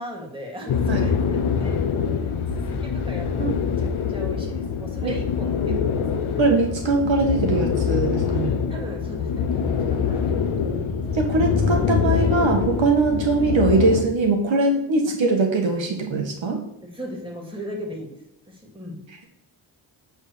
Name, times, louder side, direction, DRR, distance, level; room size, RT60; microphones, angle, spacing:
voice 1, 0.0-1.8 2.2-6.0 6.3-6.8 8.7-10.9 11.5-11.9 13.1-13.2 16.8-18.2 18.5-19.0, equal, 10° right, 0 dB, 2.8 m, -37 dB
sound 1, 0.7-14.0, left 6 dB, 90° left, 0.9 m, -25 dB
voice 2, 6.4-8.5 11.1-16.6, right 3 dB, 70° right, 2 dB, 1.5 m, -21 dB
sound 2, 8.7-14.0, left 2 dB, 70° left, 1.2 m, -30 dB
8.9 x 3.7 x 6.6 m, 0.84 s
cardioid pair, 60°, 48 cm